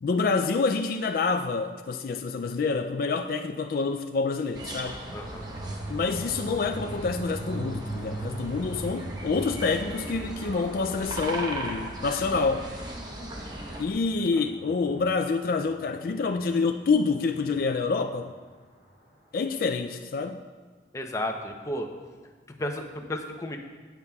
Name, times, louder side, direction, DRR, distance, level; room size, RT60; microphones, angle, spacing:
voice 1, 0.0-5.0 5.9-12.7 13.8-18.3 19.3-20.4, left 4 dB, 50° left, 6 dB, 0.3 m, -27 dB
sound 1, 4.5-13.8, right 1 dB, 20° right, 0.9 m, -38 dB
sound 2, 5.0-18.9, right 2 dB, 50° right, 2.6 m, -41 dB
voice 2, 5.1-5.4 20.9-21.9 22.6-23.6, left 1 dB, 15° left, 3 dB, 0.6 m, -33 dB
17.5 x 7.0 x 2.3 m, 1.4 s
head